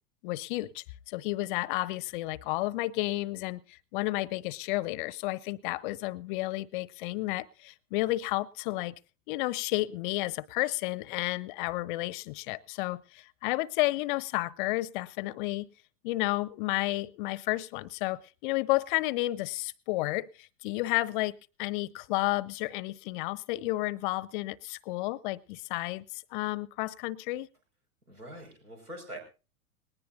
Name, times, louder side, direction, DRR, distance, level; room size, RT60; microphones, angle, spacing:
voice 1, 0.2-9.0 9.3-15.7 16.0-27.5, left 19 dB, 35° left, 0.6 m, -32 dB
voice 2, 28.1-29.2, right 1 dB, 80° right, 5.4 m, -43 dB
19.5 x 19.0 x 2.6 m
figure-of-eight pair, 95°, 44 cm